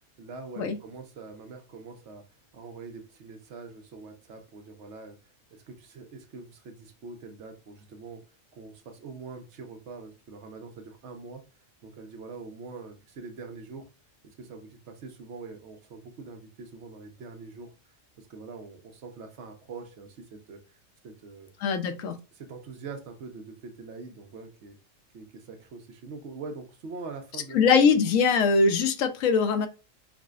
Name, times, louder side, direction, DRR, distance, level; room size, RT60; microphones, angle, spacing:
voice 1, 0.2-5.2 5.5-8.2 8.5-11.4 11.8-13.9 14.2-17.7 18.2-20.8 21.0-21.5 22.0-24.8 25.1-27.9, right 4 dB, 65° right, 1.0 m, -43 dB
voice 2, 21.6-22.1 27.5-29.7, left 5 dB, 85° left, 1.0 m, -22 dB
4.7 x 2.1 x 2.3 m
omnidirectional pair, 1.4 m